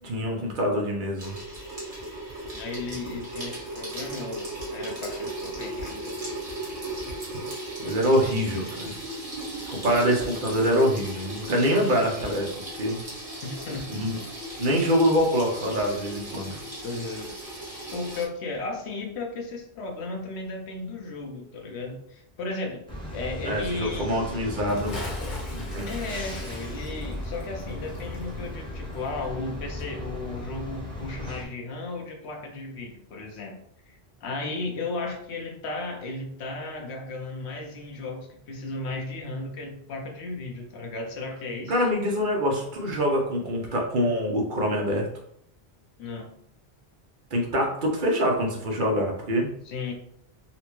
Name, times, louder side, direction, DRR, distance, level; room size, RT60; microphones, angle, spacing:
voice 1, 0.0-1.4 7.8-8.9 9.7-13.0 13.9-14.2 14.6-16.6 23.5-25.1 25.5-25.9 41.7-45.1 47.3-49.5, equal, 55° right, 0 dB, 0.8 m, -25 dB
Water tap faucet / Sink (filling or washing), 1.2-18.3, right 1 dB, 35° right, 1.2 m, -36 dB
voice 2, 2.5-6.1 13.4-13.9 16.8-17.4 17.9-22.8 23.1-24.1 25.8-33.6 33.9-41.8 46.0-46.3 49.6-49.9, left 3 dB, 90° left, 2 dB, 1.0 m, -35 dB
sound 1, 22.9-31.4, left 1 dB, 5° left, 0.9 m, -36 dB
Bathtub (filling or washing) / Splash splatter, 24.6-29.5 29.8-29.9, left 2 dB, 50° left, 0.9 m, -41 dB
4.1 x 2.1 x 2.9 m, 0.70 s
omnidirectional pair, 1.1 m